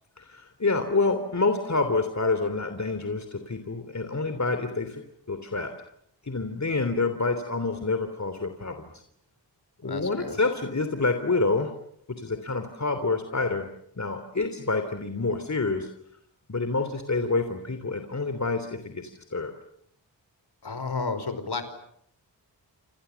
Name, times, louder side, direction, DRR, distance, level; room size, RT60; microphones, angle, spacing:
voice 1, 0.2-5.7 6.2-8.8 9.8-11.7 12.2-13.7 14.0-15.9 16.5-19.5, left 3 dB, 40° left, 8 dB, 3.2 m, -27 dB
voice 2, 9.8-10.4 20.6-21.7, left 4 dB, 60° left, 10 dB, 5.2 m, -32 dB
29.0 x 27.5 x 7.1 m, 0.71 s
cardioid pair, 55°, 43 cm